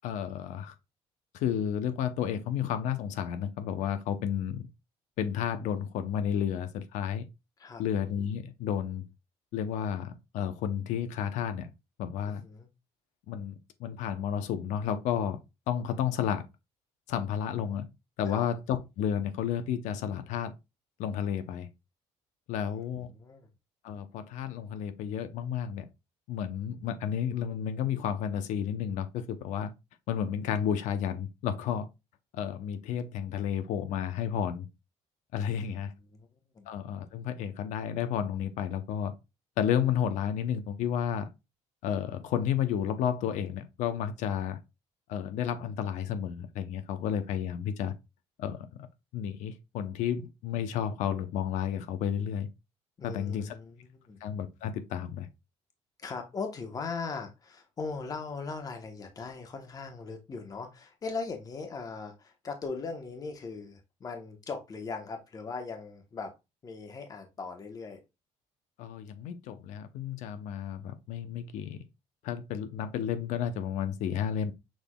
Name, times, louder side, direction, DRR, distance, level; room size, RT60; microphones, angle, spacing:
voice 1, 0.0-0.7 1.3-4.7 5.2-7.3 7.8-9.1 9.5-11.7 12.0-12.4 13.3-15.4 15.7-16.4 17.1-17.9 18.2-20.5 21.0-21.7 22.5-23.1 23.8-25.8 26.3-29.7 30.1-31.9 32.3-34.7 35.3-35.9 36.7-39.1 39.6-41.3 41.8-44.6 45.1-47.9 48.4-48.7 49.1-52.5 53.0-53.5 54.2-55.3 68.8-71.8 72.2-74.5, left 9 dB, 80° left, 0.8 m, -32 dB
voice 2, 12.2-12.7 18.3-18.5 22.6-22.8 23.1-23.5 35.5-36.3 36.5-36.7 53.0-54.2 56.0-66.3 66.6-68.0, left 4 dB, 30° left, 1.1 m, -39 dB
6.3 x 3.5 x 2.3 m
cardioid pair, 135°, 12 cm